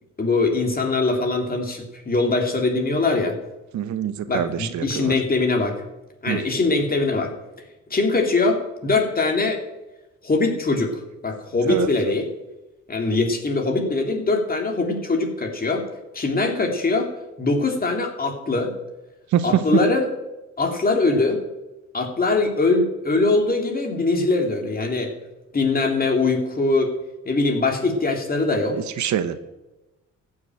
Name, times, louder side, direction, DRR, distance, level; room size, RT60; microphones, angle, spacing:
voice 1, 0.2-3.4 4.3-5.7 6.2-7.3 7.9-9.6 10.2-12.3 12.9-15.9 16.1-17.1 17.4-18.7 19.4-20.1 20.6-21.4 21.9-25.1 25.5-26.9 27.2-28.7, left 3 dB, 30° left, 3 dB, 2.7 m, -22 dB
voice 2, 3.7-5.1 6.3-6.4 11.7-11.9 19.3-19.9 29.0-29.4, right 10 dB, 70° right, 12 dB, 1.0 m, -24 dB
14.5 x 6.3 x 8.9 m, 1.0 s
cardioid pair, 90°, 30 cm